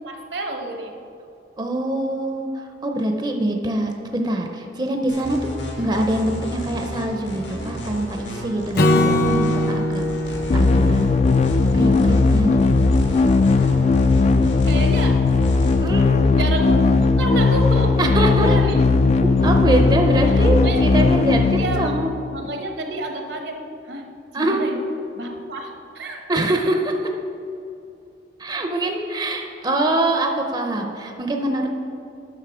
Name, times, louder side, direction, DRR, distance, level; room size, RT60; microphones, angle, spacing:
voice 1, 0.0-1.1 11.3-12.1 14.4-15.6 16.2-18.9 20.3-20.8 21.6-21.9 22.3-24.8 25.1-26.2, right 2 dB, 75° right, 3 dB, 1.1 m, -30 dB
voice 2, 1.6-5.5 5.8-10.1 10.5-11.1 11.7-12.8 15.8-16.2 18.0-18.6 19.2-22.1 24.3-24.7 26.3-26.9 28.4-31.7, right 1 dB, 25° right, 3 dB, 0.6 m, -24 dB
sound 1, 5.1-15.8, left 1 dB, 85° left, 2.0 m, -32 dB
Acoustic guitar / Strum, 8.8-12.1, left 1 dB, 60° left, 0.7 m, -22 dB
sound 2, 10.5-22.4, left 3 dB, 40° left, 0.3 m, -17 dB
10.0 x 6.4 x 4.9 m, 2.6 s
head